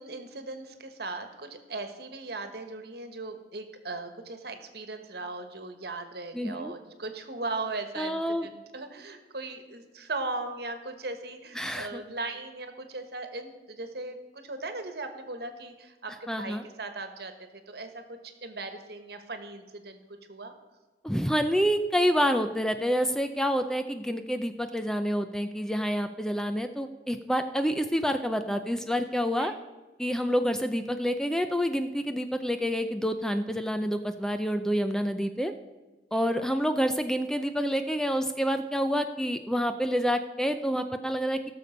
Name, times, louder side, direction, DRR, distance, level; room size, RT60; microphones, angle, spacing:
voice 1, 0.0-17.3 17.7-20.0 20.3-20.5 29.4-29.6 36.1-36.2, right 3 dB, 60° right, 8 dB, 1.3 m, -38 dB
voice 2, 6.3-6.7 8.0-8.5 11.6-12.0 16.3-16.6 21.0-29.5 30.0-35.5 36.1-41.5, equal, 5° left, 8 dB, 0.4 m, -28 dB
16.5 x 6.8 x 5.2 m, 1.2 s
head